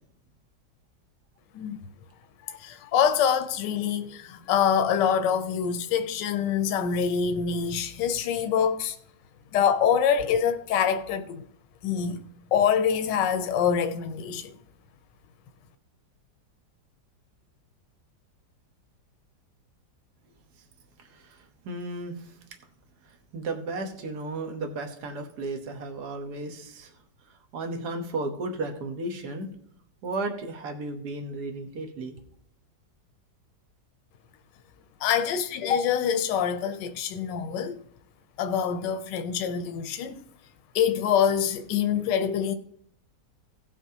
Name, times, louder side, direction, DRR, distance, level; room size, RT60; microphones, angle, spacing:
voice 1, 2.5-9.0 9.5-11.4 11.8-12.2 12.5-14.5 35.0-37.8 38.4-40.2 40.7-42.5, left 7 dB, 85° left, 1.3 m, -25 dB
voice 2, 21.0-22.4 23.0-26.9 27.5-29.5 30.0-32.1, right 2 dB, 65° right, 1.6 m, -34 dB
17.0 x 6.0 x 2.8 m
omnidirectional pair, 1.9 m